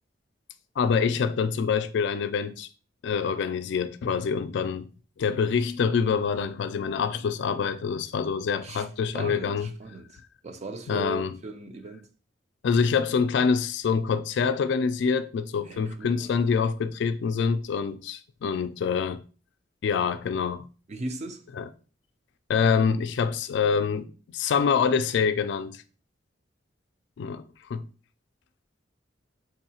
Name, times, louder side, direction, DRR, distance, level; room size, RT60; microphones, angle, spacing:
voice 1, 0.8-2.7 3.0-4.9 5.2-9.7 10.9-11.3 12.6-19.2 19.8-20.6 21.6-21.7 22.5-25.8 27.2-27.4 27.7-27.8, left 6 dB, 70° left, 0.3 m, -26 dB
voice 2, 9.1-12.1 15.7-16.3 20.9-21.4, right 2 dB, 40° right, 0.5 m, -38 dB
3.8 x 2.7 x 2.8 m
head